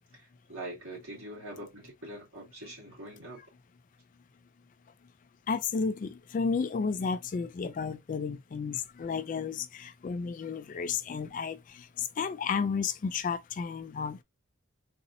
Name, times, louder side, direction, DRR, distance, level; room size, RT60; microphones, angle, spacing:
voice 1, 0.1-3.4, right 1 dB, 65° right, 2.6 m, -43 dB
voice 2, 5.5-14.2, left 5 dB, 40° left, 0.3 m, -32 dB
4.0 x 2.7 x 2.6 m
head